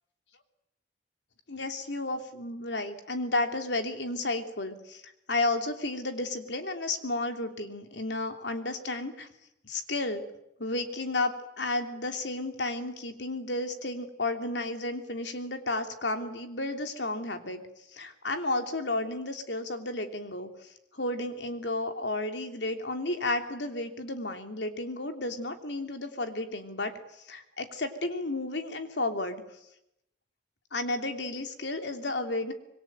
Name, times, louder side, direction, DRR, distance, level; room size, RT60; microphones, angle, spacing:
voice 1, 1.5-9.3 9.6-10.2 10.6-17.6 17.9-29.4 30.7-32.5, left 2 dB, 75° left, 6 dB, 3.1 m, -32 dB
26.0 x 22.0 x 9.1 m, 0.82 s
head